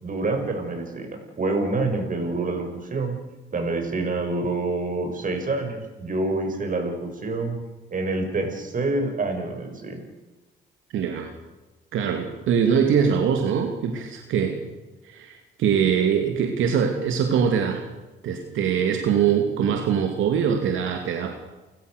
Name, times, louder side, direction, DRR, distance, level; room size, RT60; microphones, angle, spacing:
voice 1, 0.0-3.2 3.5-7.6 7.9-10.0, right 2 dB, 40° right, 4 dB, 7.4 m, -27 dB
voice 2, 10.9-11.3 11.9-14.6 15.0-17.8 18.2-21.4, right 7 dB, 80° right, 4 dB, 2.8 m, -23 dB
30.0 x 16.0 x 6.9 m, 1.1 s
cardioid pair, 90°, 20 cm